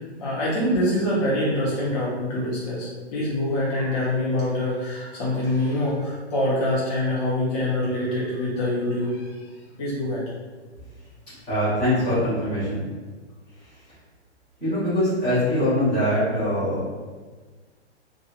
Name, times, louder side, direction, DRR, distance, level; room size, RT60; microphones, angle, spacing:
voice 1, 0.2-9.3 9.8-10.2, left 1 dB, 35° left, -8 dB, 0.7 m, -25 dB
voice 2, 11.5-12.9 14.6-16.9, left 1 dB, 5° left, -17 dB, 0.3 m, -23 dB
2.9 x 2.5 x 2.4 m, 1.4 s
hypercardioid pair, 145°, 35 cm